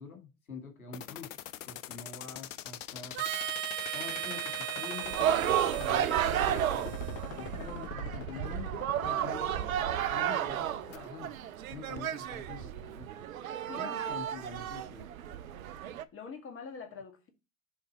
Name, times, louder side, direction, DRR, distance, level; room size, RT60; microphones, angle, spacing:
voice 1, 0.0-1.3 1.7-3.2 3.9-7.0 7.3-9.8 10.1-11.3 11.7-13.1 13.8-15.1, left 5 dB, 90° left, 1.9 m, -46 dB
sound 1, 0.9-11.0, left 12 dB, 60° left, 0.8 m, -43 dB
Harmonica, 3.1-7.9, right 13 dB, 30° right, 0.5 m, -38 dB
sound 2, 5.0-16.0, right 10 dB, 75° right, 0.7 m, -32 dB
voice 2, 13.7-14.2 16.1-17.3, left 5 dB, 30° left, 1.9 m, -45 dB
7.2 x 3.4 x 4.2 m
hypercardioid pair, 80°, 42 cm